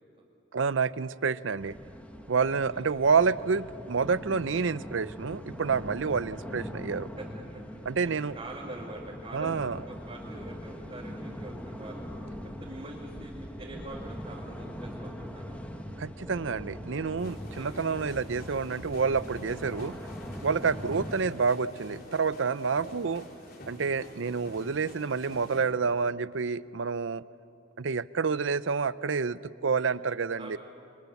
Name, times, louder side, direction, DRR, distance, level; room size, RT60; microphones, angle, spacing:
voice 1, 0.5-1.8 2.3-7.1 7.9-8.4 9.3-9.8 16.0-20.0 20.4-23.2 23.7-27.2 27.8-30.6, right 5 dB, 75° right, 16 dB, 0.6 m, -28 dB
sound 1, 1.6-21.2, equal, 10° left, 1.5 m, -41 dB
voice 2, 2.5-2.8 7.2-7.3 8.0-12.0 12.4-15.7 17.6-17.7 22.8-23.2 30.4-30.6, right 2 dB, 30° right, -4 dB, 2.7 m, -44 dB
sound 2, 17.2-25.6, left 1 dB, 55° left, 4.2 m, -48 dB
29.5 x 24.0 x 7.1 m, 2.7 s
head